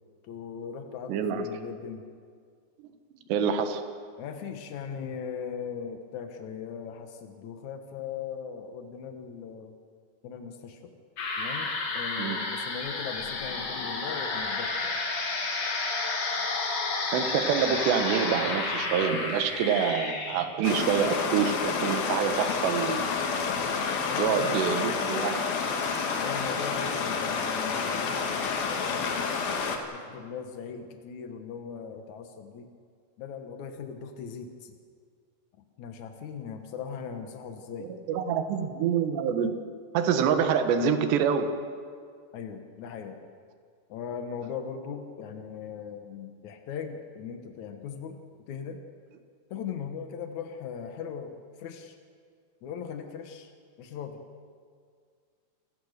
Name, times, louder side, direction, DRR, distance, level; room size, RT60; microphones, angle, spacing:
voice 1, 0.2-2.0 4.2-9.7 10.2-10.9 11.4-15.0 24.1-24.6 26.1-29.2 29.9-32.7 33.2-34.8 35.8-37.9 42.3-43.2 43.9-48.2 48.5-48.8 49.5-52.0 52.6-53.5 53.8-54.2, left 7 dB, 90° left, 6 dB, 1.6 m, -39 dB
voice 2, 1.1-1.5 3.3-3.8 12.2-12.4 17.1-23.1 24.2-25.5 37.8-39.6 39.9-41.5, right 7 dB, 70° right, 7 dB, 3.3 m, -26 dB
sound 1, 11.2-24.3, left 3 dB, 45° left, 3.1 m, -32 dB
Stream, 20.6-29.8, left 5 dB, 60° left, 3.2 m, -29 dB
28.0 x 17.5 x 6.7 m, 2.1 s
omnidirectional pair, 5.4 m